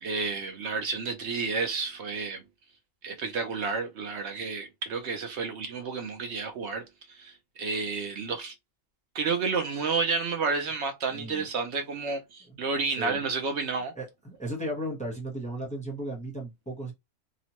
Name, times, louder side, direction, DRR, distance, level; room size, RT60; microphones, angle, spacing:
voice 1, 0.0-2.4 3.0-8.5 9.1-13.9, right 4 dB, 65° right, 0.8 m, -31 dB
voice 2, 11.1-11.5 13.0-13.2 13.9-16.9, right 1 dB, 5° left, 0.7 m, -35 dB
2.9 x 2.0 x 2.8 m
omnidirectional pair, 1.3 m